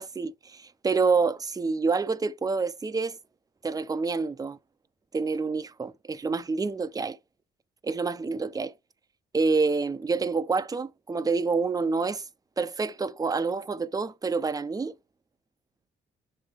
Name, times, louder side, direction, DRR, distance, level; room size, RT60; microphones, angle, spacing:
voice 1, 0.0-3.1 3.6-4.6 5.1-7.2 7.8-8.7 9.3-12.2 12.6-14.9, right 4 dB, 20° right, 0.6 m, -27 dB
6.7 x 5.5 x 3.5 m
cardioid pair, 90°, 20 cm